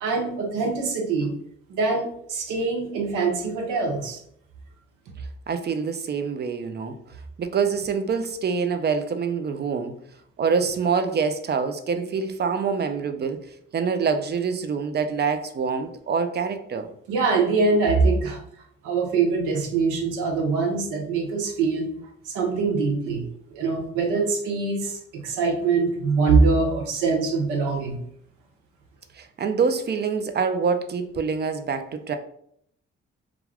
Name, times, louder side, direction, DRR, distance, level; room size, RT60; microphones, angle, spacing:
voice 1, 0.0-1.3 1.8-4.2 17.1-18.4 18.8-21.9 22.2-23.3 23.5-28.0, right 4 dB, 80° right, 3 dB, 0.6 m, -23 dB
voice 2, 5.5-7.0 7.4-10.0 10.4-13.4 13.7-16.9 29.1-32.2, right 5 dB, 35° right, 8 dB, 0.4 m, -25 dB
2.4 x 2.2 x 3.3 m, 0.69 s
hypercardioid pair, 45°, 30 cm